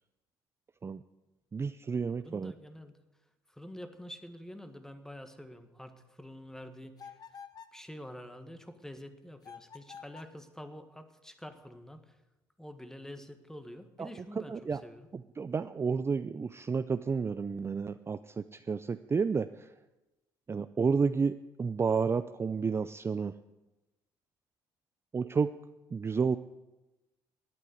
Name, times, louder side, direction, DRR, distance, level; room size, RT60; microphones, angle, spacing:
voice 1, 1.5-2.5 14.0-14.1 14.4-14.8 15.1-19.7 20.5-23.3 25.1-25.5 25.9-26.4, right 5 dB, 25° right, 11 dB, 0.4 m, -31 dB
voice 2, 2.2-3.0 3.5-7.2 7.7-12.2 12.6-15.1, equal, 5° left, 8 dB, 1.5 m, -47 dB
sound 1, 7.0-7.8 9.4-10.4, left 7 dB, 40° left, 0.9 m, -49 dB
12.0 x 9.2 x 8.1 m, 1.0 s
supercardioid pair, 75°, 10 cm